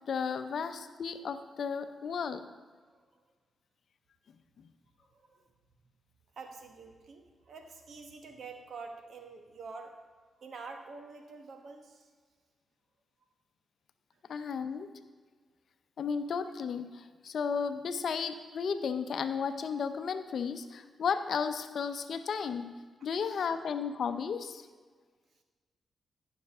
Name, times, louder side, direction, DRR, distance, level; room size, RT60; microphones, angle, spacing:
voice 1, 0.1-2.4 4.6-4.7 14.3-14.9 16.0-22.7 23.0-24.7, left 6 dB, 70° left, 10 dB, 0.6 m, -34 dB
voice 2, 5.0-5.4 6.4-9.9 10.4-12.1 14.1-14.2 23.3-23.5, right 4 dB, 70° right, 5 dB, 1.2 m, -47 dB
15.0 x 6.5 x 3.5 m, 1.5 s
supercardioid pair, 45°, 0 cm